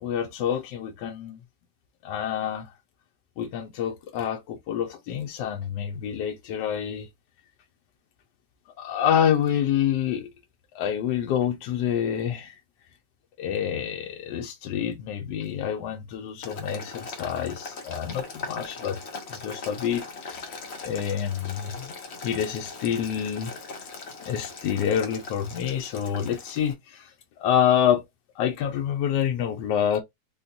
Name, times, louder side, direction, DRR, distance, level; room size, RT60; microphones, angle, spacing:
voice 1, 0.0-1.4 2.0-2.7 3.4-7.1 8.8-10.3 10.7-12.5 13.4-19.0 19.4-20.5 20.8-21.9 22.2-23.5 24.2-27.1 27.4-28.0 28.4-30.0, left 9 dB, 85° left, 1.2 m, -27 dB
Boiling, 16.4-26.7, left 4 dB, 50° left, 0.9 m, -40 dB
3.6 x 2.3 x 2.6 m
omnidirectional pair, 1.8 m